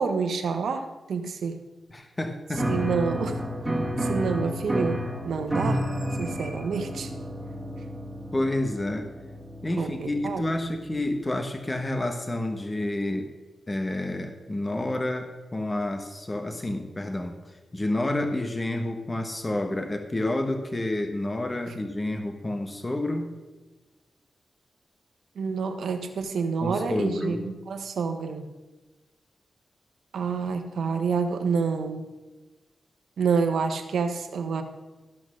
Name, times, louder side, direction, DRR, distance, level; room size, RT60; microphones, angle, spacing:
voice 1, 0.0-1.6 2.7-3.4 4.0-5.8 6.2-7.1 9.8-10.4 25.3-28.5 30.1-32.1 33.2-34.6, right 5 dB, 85° right, 7 dB, 1.1 m, -28 dB
voice 2, 1.9-2.8 8.3-9.1 9.6-13.3 13.7-23.3 26.6-27.4, left 1 dB, 25° left, 5 dB, 1.2 m, -29 dB
Piano, 2.5-11.0, equal, 15° right, 1.9 m, -31 dB
13.5 x 6.2 x 6.3 m, 1.2 s
cardioid pair, 80°, 0 cm